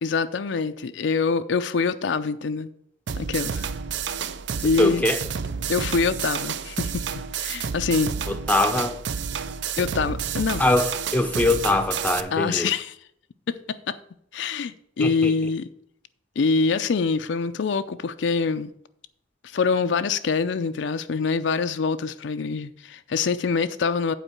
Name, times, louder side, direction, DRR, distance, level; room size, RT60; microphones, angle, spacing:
voice 1, 0.0-2.7 3.2-3.7 4.6-5.0 5.7-7.1 7.4-8.2 9.7-10.6 12.3-13.0 13.5-14.0 14.3-15.7 16.4-18.7 19.5-24.1, left 4 dB, 70° left, 0.4 m, -25 dB
sound 1, 3.1-12.2, right 7 dB, 70° right, 0.5 m, -30 dB
voice 2, 4.8-5.2 8.3-9.0 10.6-12.7 15.0-15.3, left 2 dB, 10° left, 0.6 m, -22 dB
8.1 x 4.6 x 7.2 m
head